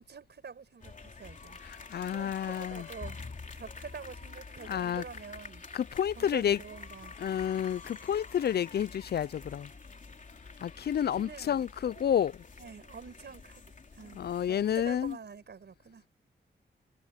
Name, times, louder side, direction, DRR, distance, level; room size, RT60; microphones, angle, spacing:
voice 1, 0.0-1.6 2.0-3.2 3.6-5.6 6.2-7.2 11.1-12.1 12.6-14.2 14.5-16.0, right 6 dB, 65° right, 5.7 m, -47 dB
sound 1, 0.8-15.1, left 4 dB, 45° left, 3.3 m, -48 dB
voice 2, 1.6-2.9 4.7-5.0 5.7-6.6 7.2-9.7 10.6-12.4 14.2-15.2, left 9 dB, 60° left, 0.4 m, -30 dB
wide cardioid pair, 85°, 19 cm